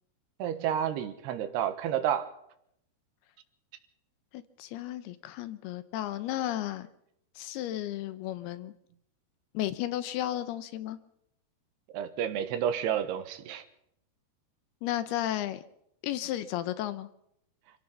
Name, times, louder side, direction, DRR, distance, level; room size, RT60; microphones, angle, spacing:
voice 1, 0.4-2.3 11.9-13.6, right 9 dB, 80° right, 10 dB, 3.2 m, -30 dB
voice 2, 4.3-6.9 7.4-8.7 9.5-11.0 14.8-15.6 16.0-17.1, left 13 dB, 75° left, 13 dB, 2.7 m, -33 dB
26.5 x 17.0 x 5.8 m, 0.77 s
omnidirectional pair, 4.8 m